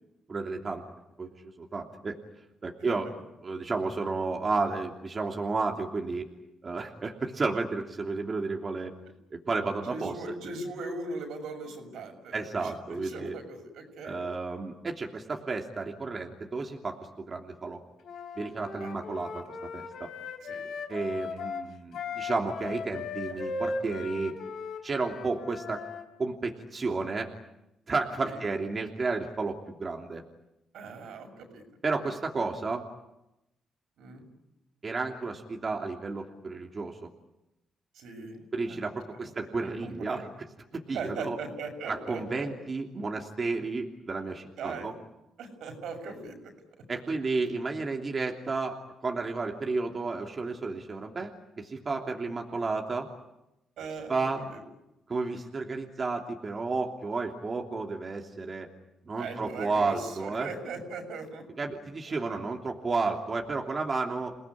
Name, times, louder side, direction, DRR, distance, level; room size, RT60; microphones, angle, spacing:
voice 1, 0.3-0.8 1.2-1.3 1.6-2.2 2.6-3.1 3.4-6.3 6.6-8.9 9.3-10.2 12.3-13.4 14.0-17.8 18.4-19.4 19.7-20.1 20.9-24.4 24.8-25.8 26.2-27.3 27.9-30.2 31.8-32.9 34.8-37.0 38.5-40.2 40.7-41.4 41.9-44.9 46.9-53.1 54.1-54.4 55.1-58.7 59.1-60.5 61.6-64.4, right 3 dB, 40° right, 2 dB, 2.9 m, -32 dB
voice 2, 9.8-14.3 18.8-18.9 20.4-20.7 28.2-28.4 30.7-31.6 34.0-34.3 37.9-38.8 39.1-39.3 39.6-40.3 40.9-42.5 44.6-44.9 45.4-46.5 53.8-54.1 54.5-54.6 59.1-61.7 62.0-62.4, right 3 dB, 80° right, 4 dB, 6.7 m, -39 dB
Wind instrument woodwind instrument, 18.0-26.0, left 4 dB, 75° left, 4.0 m, -37 dB
28.5 x 18.5 x 9.8 m, 0.92 s
cardioid pair, 80°, 0 cm